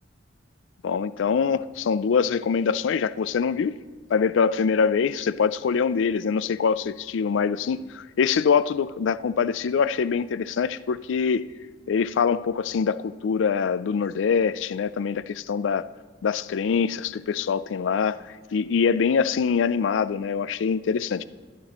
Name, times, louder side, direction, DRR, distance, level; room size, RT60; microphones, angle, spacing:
voice 1, 0.8-3.8 4.1-11.5 11.9-15.9 16.2-21.2, left 6 dB, 80° left, 0.4 m, -24 dB
12.5 x 11.0 x 3.0 m
head